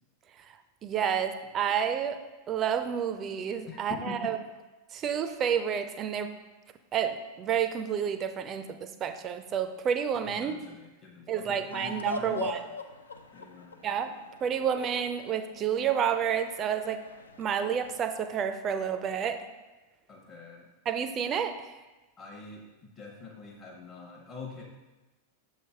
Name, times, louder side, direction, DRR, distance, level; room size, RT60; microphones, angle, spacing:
voice 1, 0.8-2.2 2.5-4.3 4.9-6.3 6.9-10.6 11.3-12.6 13.8-14.1 14.4-17.0 17.4-19.4 20.9-21.5, right 8 dB, 30° right, 9 dB, 0.4 m, -30 dB
voice 2, 3.7-4.3 10.3-12.7 13.3-13.9 20.1-20.7 22.2-24.6, left 4 dB, 30° left, -2 dB, 0.9 m, -44 dB
sound 1, 11.7-18.1, left 2 dB, 75° left, 0.4 m, -42 dB
6.6 x 3.3 x 4.4 m, 1.2 s
figure-of-eight pair, 90°, 0 cm